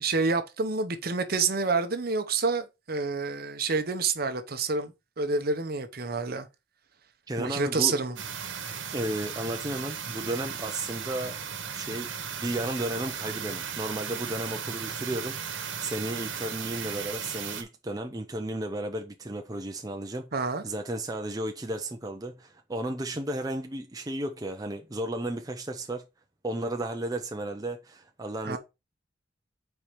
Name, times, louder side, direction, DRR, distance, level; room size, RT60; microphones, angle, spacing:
voice 1, 0.0-6.5 7.4-8.2 20.3-20.6 28.4-28.6, right 4 dB, 50° right, 0.8 m, -28 dB
voice 2, 7.3-8.0 8.9-11.4 11.7-26.0 26.4-28.6, right 1 dB, 20° right, 0.5 m, -34 dB
sound 1, 8.2-17.6, right 7 dB, 80° right, 1.2 m, -36 dB
4.7 x 4.4 x 5.1 m
head